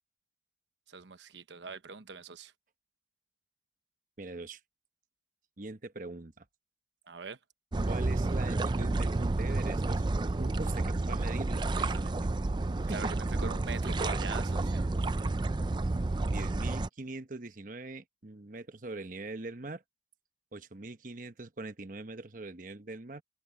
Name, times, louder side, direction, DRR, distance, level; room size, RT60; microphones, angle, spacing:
voice 1, 0.9-2.5 7.1-7.4 10.6-10.7 12.6-14.9, right 4 dB, 90° right, 1.1 m, -43 dB
voice 2, 4.2-4.6 5.6-6.5 7.9-10.1 10.3-12.2 12.9-13.1 13.4-13.5 16.2-19.8 20.5-23.2, right 2 dB, 45° right, 1.1 m, -42 dB
sound 1, 7.7-16.9, right 2 dB, 25° right, 0.4 m, -30 dB
head